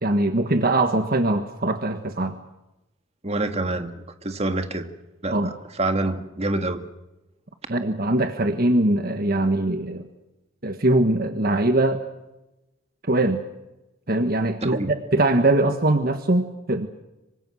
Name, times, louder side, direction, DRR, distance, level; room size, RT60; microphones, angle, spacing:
voice 1, 0.0-2.4 5.3-5.5 7.7-10.1 10.6-12.0 13.1-13.4 14.1-16.9, right 2 dB, 50° right, 7 dB, 1.5 m, -22 dB
voice 2, 3.2-4.9 5.2-6.9 14.6-14.9, right 2 dB, 30° right, 7 dB, 1.9 m, -27 dB
26.0 x 24.5 x 6.3 m, 0.97 s
head